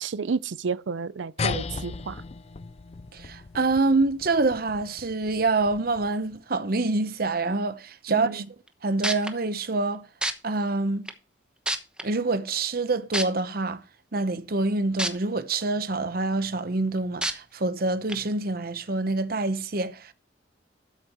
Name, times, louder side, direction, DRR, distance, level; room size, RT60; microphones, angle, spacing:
voice 1, 0.0-2.2 8.1-8.5, right 5 dB, 85° right, 0.5 m, -31 dB
sound 1, 1.4-6.3, left 5 dB, 35° left, 0.4 m, -36 dB
voice 2, 3.1-8.4 8.8-10.0 10.4-11.1 12.0-13.8 14.1-20.1, right 3 dB, 55° right, 0.8 m, -26 dB
sound 2, 8.7-8.8 9.0-9.3 10.2-10.3 11.1-11.2 11.7-12.0 13.1-13.2 15.0-15.1 15.6-15.7 17.2-17.3 18.1-18.2, right 1 dB, 5° right, 1.0 m, -26 dB
13.0 x 8.3 x 3.0 m
head